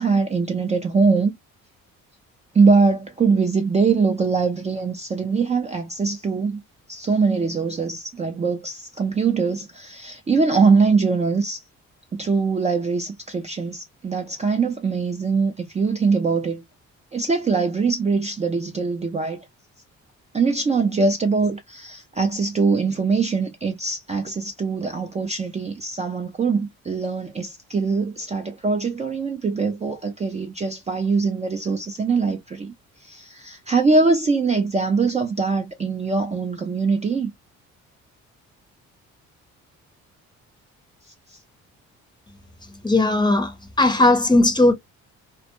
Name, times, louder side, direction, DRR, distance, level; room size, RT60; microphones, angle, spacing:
voice 1, 0.0-1.4 2.5-6.6 6.9-11.6 12.1-16.6 17.1-19.4 20.3-32.7 33.0-37.3 41.3-41.4, right 4 dB, 25° right, 0.4 m, -22 dB
voice 2, 42.8-44.7, left 2 dB, 15° left, 0.6 m, -17 dB
2.2 x 2.0 x 2.8 m
cardioid pair, 90°, 30 cm